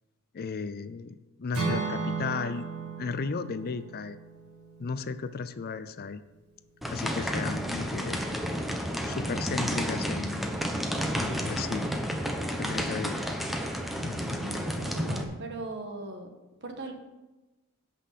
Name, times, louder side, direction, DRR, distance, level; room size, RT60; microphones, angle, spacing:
voice 1, 0.3-2.7 3.0-4.2 4.8-6.2 6.9-8.2 9.0-10.5 11.2-11.9 12.6-13.3 14.0-14.5, left 5 dB, 45° left, 13 dB, 0.4 m, -35 dB
Acoustic guitar / Strum, 1.5-5.6, right 4 dB, 70° right, 3.5 m, -35 dB
sound 1, 6.8-15.2, equal, ahead, 0.9 m, -31 dB
voice 2, 14.3-16.3 16.6-16.9, right 2 dB, 55° right, 4 dB, 1.5 m, -39 dB
16.5 x 5.7 x 4.1 m, 1.1 s
head